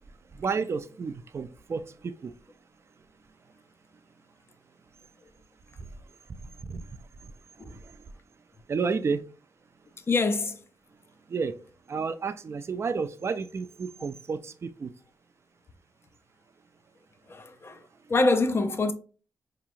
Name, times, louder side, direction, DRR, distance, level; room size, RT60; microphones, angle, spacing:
voice 1, 0.4-2.3 6.7-6.8 7.7-7.8 8.7-9.2 11.3-11.5 11.9-14.9, right 5 dB, 40° right, 0.4 m, -31 dB
voice 2, 10.1-10.6 17.3-17.8 18.1-18.9, left 3 dB, 35° left, 0.5 m, -25 dB
4.5 x 2.9 x 2.5 m
cardioid pair, 90°, 7 cm